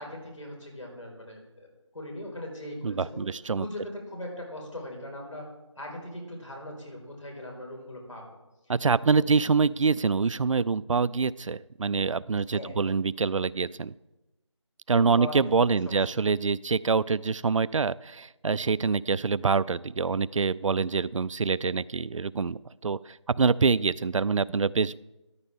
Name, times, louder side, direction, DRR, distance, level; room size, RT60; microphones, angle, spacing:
voice 1, 0.0-3.3 3.6-5.5 5.8-8.3 9.2-9.4 12.5-12.8 14.9-16.2, left 1 dB, 85° left, 0 dB, 5.1 m, -40 dB
voice 2, 2.8-3.6 8.7-13.9 14.9-25.0, right 5 dB, 80° right, 20 dB, 0.4 m, -25 dB
14.0 x 11.5 x 3.6 m, 1.0 s
figure-of-eight pair, 175°, 16 cm